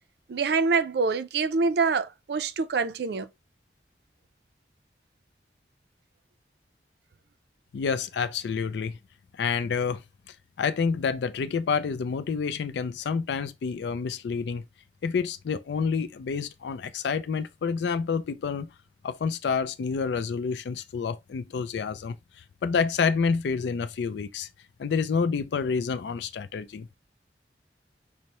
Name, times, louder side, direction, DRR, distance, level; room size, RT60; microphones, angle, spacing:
voice 1, 0.3-3.3, right 4 dB, 70° right, 0.4 m, -25 dB
voice 2, 7.7-9.0 9.3-10.0 10.6-14.6 15.0-18.7 19.0-22.2 22.6-24.5 24.8-26.9, left 5 dB, 80° left, 0.4 m, -28 dB
5.3 x 2.1 x 2.9 m
head